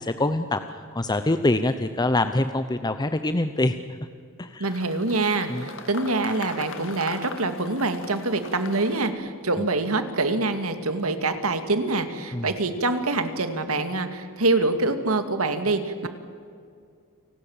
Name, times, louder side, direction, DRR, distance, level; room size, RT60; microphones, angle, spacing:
voice 1, 0.0-3.8 4.4-4.7 5.5-5.7 9.6-9.7 12.3-12.5, left 2 dB, 20° left, 9 dB, 0.7 m, -25 dB
sound 1, 4.6-9.1, left 4 dB, 65° left, 2.3 m, -41 dB
voice 2, 4.6-16.1, right 2 dB, 90° right, 8 dB, 2.2 m, -25 dB
29.0 x 19.0 x 7.2 m, 2.3 s
head